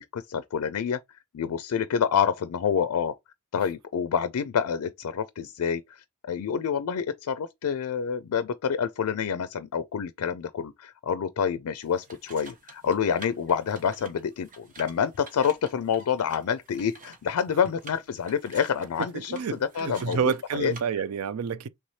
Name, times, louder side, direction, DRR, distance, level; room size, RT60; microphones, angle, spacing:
voice 1, 0.0-3.2 3.5-20.2 20.5-20.7, left 7 dB, 80° left, 0.4 m, -28 dB
sound 1, 11.8-20.8, right 3 dB, 40° right, 1.0 m, -49 dB
voice 2, 19.3-21.7, right 6 dB, 75° right, 0.4 m, -29 dB
3.4 x 3.2 x 4.0 m
head